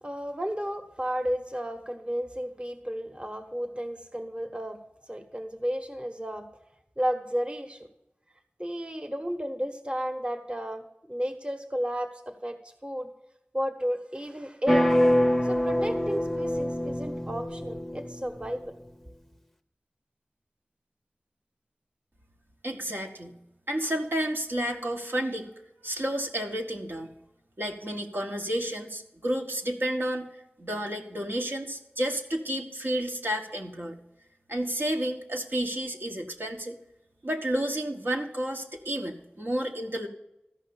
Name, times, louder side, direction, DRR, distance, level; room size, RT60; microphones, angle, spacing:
voice 1, 0.0-6.5 7.0-7.9 8.6-10.8 11.1-13.1 13.5-14.9 15.4-18.7, equal, 25° right, 6 dB, 1.2 m, -33 dB
sound 1, 14.7-18.5, equal, 5° left, 0.7 m, -25 dB
voice 2, 22.6-23.4 23.7-25.5 25.8-27.1 27.6-30.3 30.6-33.9 34.5-36.7 37.2-40.1, right 1 dB, 70° right, 1 dB, 1.3 m, -31 dB
13.5 x 5.4 x 7.0 m, 0.90 s
wide cardioid pair, 50°, 4 cm